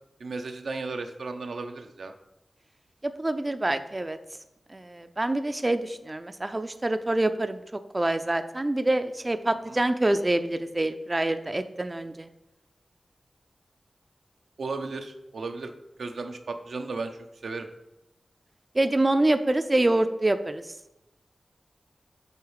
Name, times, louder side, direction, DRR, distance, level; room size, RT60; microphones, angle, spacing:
voice 1, 0.2-2.1 9.6-9.8 14.6-15.7 16.0-17.7, right 3 dB, 90° right, 5 dB, 0.7 m, -35 dB
voice 2, 3.0-4.2 4.7-7.6 7.9-12.3 18.7-20.7, right 1 dB, 30° right, 9 dB, 0.4 m, -26 dB
8.3 x 4.0 x 4.8 m, 0.90 s
cardioid pair, 55°, 0 cm